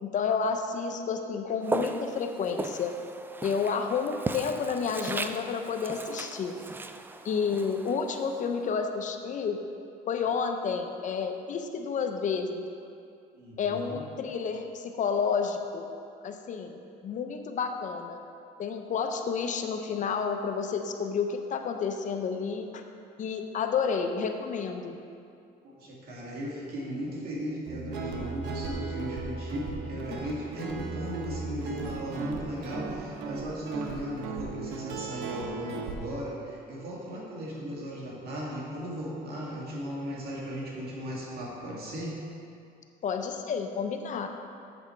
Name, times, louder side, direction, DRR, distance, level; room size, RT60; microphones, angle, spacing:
voice 1, 0.0-2.9 3.4-6.5 7.2-9.6 10.1-12.7 13.6-15.9 16.2-18.2 18.6-22.8 23.2-24.9 30.1-30.2 43.0-44.3, left 6 dB, 50° left, 5 dB, 0.7 m, -30 dB
Walk footsteps, 1.6-8.8, right 2 dB, 10° right, 0.3 m, -37 dB
voice 2, 13.3-14.0 25.6-42.2, equal, 65° right, -4 dB, 2.2 m, -37 dB
Guitar, 27.7-35.9, right 4 dB, 90° right, 1.0 m, -36 dB
8.0 x 7.1 x 4.4 m, 2.5 s
cardioid pair, 110°, 17 cm